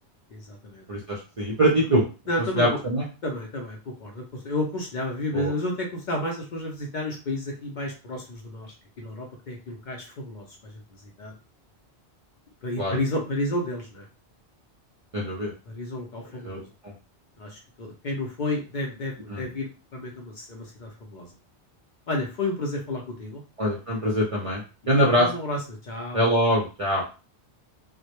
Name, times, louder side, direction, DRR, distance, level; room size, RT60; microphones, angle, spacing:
voice 1, 0.3-0.8 2.3-2.8 3.2-11.4 12.6-14.0 15.7-16.7 17.4-21.3 22.1-23.4 24.8-26.2, left 1 dB, 55° left, -1 dB, 0.6 m, -31 dB
voice 2, 0.9-2.0 2.6-3.1 5.3-5.5 12.8-13.0 15.1-15.5 16.4-16.9 19.3-19.5 23.6-25.3 26.1-27.0, equal, 50° right, -3 dB, 0.4 m, -23 dB
2.1 x 2.0 x 2.8 m, 0.33 s
omnidirectional pair, 1.1 m